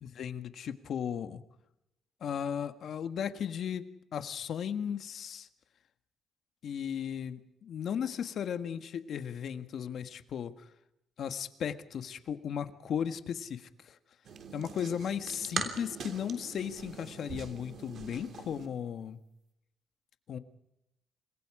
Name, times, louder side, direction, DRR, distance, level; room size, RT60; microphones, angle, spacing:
voice 1, 0.0-1.4 2.2-5.5 6.6-10.7 11.2-14.0 14.5-19.2 20.3-20.4, left 8 dB, 65° left, 9 dB, 1.7 m, -36 dB
sound 1, 14.2-18.7, right 6 dB, 60° right, 3.2 m, -41 dB
27.5 x 22.0 x 5.0 m, 0.85 s
cardioid pair, 90°, 0 cm